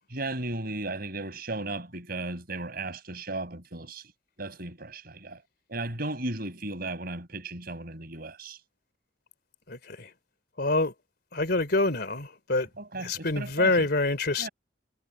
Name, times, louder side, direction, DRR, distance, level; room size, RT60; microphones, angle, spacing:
voice 1, 0.1-4.0 4.4-5.4 5.7-8.6 12.8-13.9 14.4-14.5, right 2 dB, 55° right, 5.6 m, -35 dB
voice 2, 9.7-10.1 10.6-10.9 11.3-12.7 13.0-14.5, left 2 dB, 55° left, 3.2 m, -26 dB
head